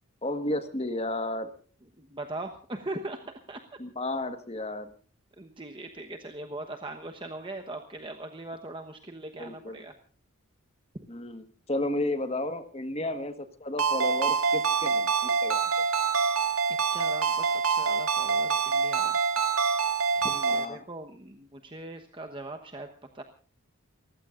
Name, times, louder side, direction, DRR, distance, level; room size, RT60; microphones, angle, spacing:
voice 1, 0.2-1.5 3.8-4.9 9.4-9.8 11.1-15.7 20.3-20.9, left 1 dB, 30° left, 9 dB, 1.5 m, -33 dB
voice 2, 2.0-3.6 5.4-9.9 13.0-13.1 16.8-19.2 20.2-22.9 23.1-23.2, right 2 dB, 25° right, 4 dB, 1.1 m, -40 dB
Ringtone, 13.8-20.7, right 5 dB, 85° right, 2.5 m, -26 dB
30.0 x 15.5 x 2.5 m, 0.41 s
head